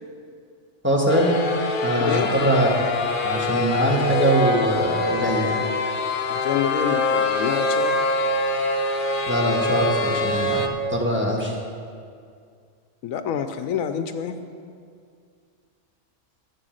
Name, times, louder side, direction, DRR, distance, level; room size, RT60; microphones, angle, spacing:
voice 1, 0.8-1.3 1.8-2.9 3.2-5.6 9.3-11.5, right 1 dB, 10° right, -2 dB, 1.5 m, -22 dB
sound 1, 1.1-10.7, left 2 dB, 50° left, 0.8 m, -24 dB
voice 2, 2.0-2.3 6.3-8.0 13.0-14.4, left 8 dB, 85° left, 9 dB, 1.1 m, -27 dB
11.0 x 8.2 x 6.4 m, 2.2 s
omnidirectional pair, 1.4 m